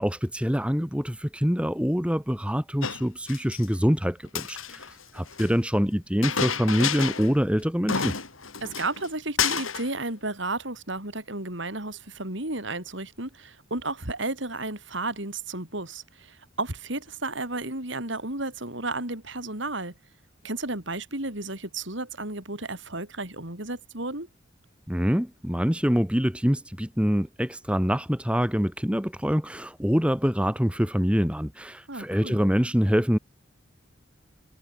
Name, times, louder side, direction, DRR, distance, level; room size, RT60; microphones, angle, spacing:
voice 1, 0.0-8.1 24.9-33.2, equal, 5° right, 2.1 m, -25 dB
Chink clink, 2.8-3.7 4.2-5.5 6.2-7.3 7.6-7.7 7.9-9.1 9.4-9.9, left 6 dB, 85° left, 4.2 m, -30 dB
voice 2, 8.6-19.9 20.4-24.3 31.9-32.4, right 2 dB, 65° right, 5.2 m, -33 dB
head